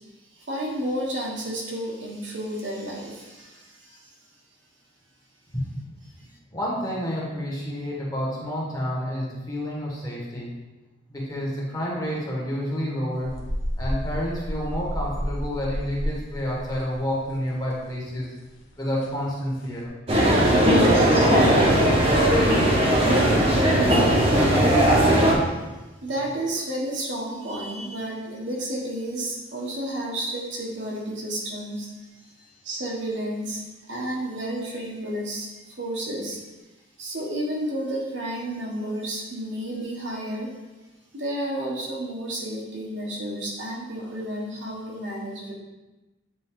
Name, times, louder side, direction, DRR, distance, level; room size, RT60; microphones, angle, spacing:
voice 1, 0.3-4.1 25.2-25.6 26.0-32.1 32.6-33.6 33.9-35.5 35.8-36.4 37.0-40.5 41.1-45.5, right 1 dB, 65° right, -3 dB, 1.4 m, -31 dB
voice 2, 6.5-10.5 11.1-13.3 13.8-18.3 18.8-19.9 23.1-23.2 23.7-23.8, equal, 20° left, -5 dB, 1.5 m, -29 dB
sound 1, 13.1-17.8 18.0-18.2 18.5-18.6 19.0-19.2 19.6-19.9, equal, 80° left, 1.0 m, -31 dB
sound 2, 20.1-25.3, right 1 dB, 30° right, 1.1 m, -18 dB
8.4 x 3.9 x 3.7 m, 1.1 s
head